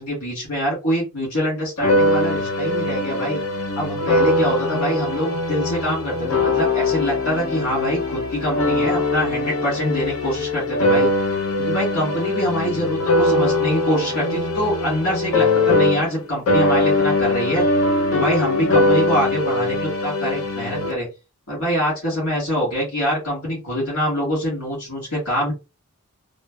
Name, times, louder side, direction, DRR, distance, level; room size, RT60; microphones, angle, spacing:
voice 1, 0.0-3.4 3.7-11.1 11.6-17.6 18.1-21.1 21.5-25.5, equal, 90° left, -6 dB, 1.6 m, -24 dB
sound 1, 1.8-16.2 16.5-20.9, left 2 dB, 70° left, 0.6 m, -21 dB
3.1 x 2.1 x 2.2 m, 0.26 s
head